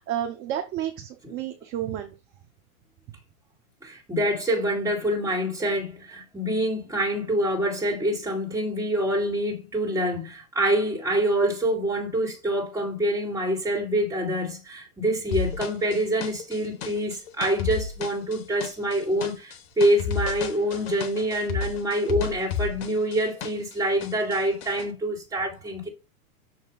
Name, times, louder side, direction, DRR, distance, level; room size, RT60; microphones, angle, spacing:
voice 1, 0.0-2.1, right 11 dB, 25° right, 0.5 m, -31 dB
voice 2, 3.8-25.9, right 1 dB, 5° right, 2.1 m, -26 dB
sound 1, 15.3-23.7 24.0-24.8, left 6 dB, 40° left, 1.0 m, -32 dB
6.5 x 2.8 x 5.3 m
hypercardioid pair, 130°, 45 cm